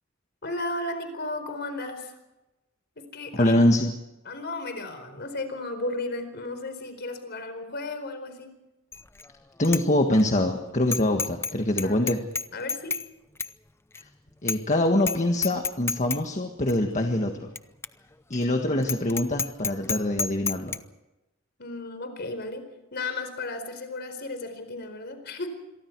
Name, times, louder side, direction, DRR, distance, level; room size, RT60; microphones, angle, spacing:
voice 1, 0.4-2.1 3.0-3.6 4.2-8.5 11.8-12.1 12.5-13.0 18.6-18.7 21.6-22.7 22.9-25.6, left 2 dB, 50° left, 8 dB, 4.5 m, -34 dB
voice 2, 3.3-3.9 9.6-12.2 14.4-17.5 18.3-20.7, left 1 dB, 35° left, 4 dB, 1.6 m, -24 dB
Bicycle bell, 8.9-9.3 9.6-9.8 10.2-10.3 10.9-11.5 11.8-13.1 13.4-13.5 13.9-14.0 14.5-14.7 15.0-15.2 15.4-16.2 16.7-16.8 17.6-17.7 17.8-17.9 18.3-18.4 18.8-20.8, left 5 dB, 10° left, 0.6 m, -29 dB
27.0 x 23.0 x 4.7 m, 0.99 s
head